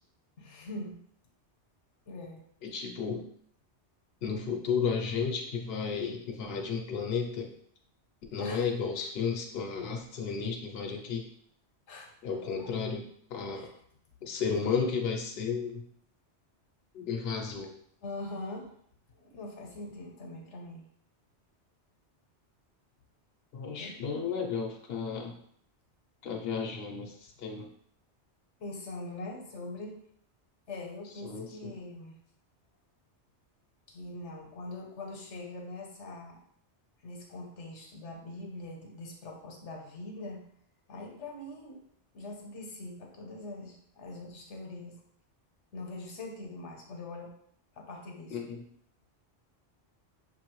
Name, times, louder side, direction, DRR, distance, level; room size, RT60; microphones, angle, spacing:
voice 1, 0.4-1.0 2.1-2.4 8.4-8.7 11.9-12.7 13.5-13.8 18.0-18.7 19.1-20.8 23.8-24.1 28.6-30.0 30.7-32.2 33.9-36.4 37.0-40.5 40.9-41.8 42.1-44.9 45.7-47.3 47.7-48.5, left 2 dB, 85° left, 1 dB, 1.2 m, -42 dB
voice 2, 2.7-3.2 4.2-7.5 8.3-11.2 12.2-13.0 13.3-13.7 14.2-15.8 16.9-17.7 23.5-25.3 26.2-27.1 27.4-27.7 31.2-31.7 48.3-48.6, left 6 dB, 60° left, 1 dB, 0.9 m, -33 dB
6.0 x 2.7 x 3.0 m, 0.65 s
omnidirectional pair, 1.2 m